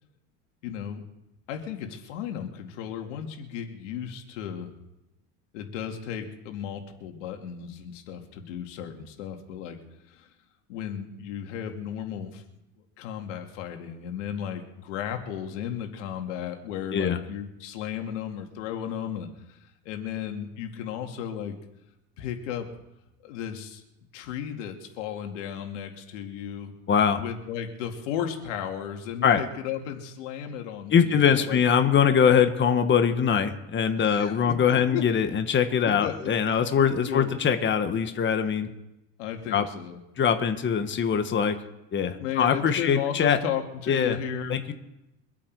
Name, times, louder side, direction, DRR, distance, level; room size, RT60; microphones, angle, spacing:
voice 1, 0.6-1.0 1.5-4.7 5.5-9.8 10.1-10.3 10.7-12.4 13.0-19.6 19.8-21.6 22.2-22.7 23.2-23.8 24.1-26.7 27.2-31.6 34.0-35.0 35.8-36.3 36.8-37.3 39.2-40.0 42.2-44.7, left 9 dB, 90° left, 4 dB, 2.3 m, -34 dB
voice 2, 26.9-27.2 29.2-29.4 30.9-38.7 39.5-39.6 40.2-41.6 41.9-43.4 43.9-44.2 44.5-44.7, left 7 dB, 30° left, 8 dB, 1.5 m, -22 dB
24.0 x 8.5 x 4.8 m, 0.90 s
supercardioid pair, 110°, 36 cm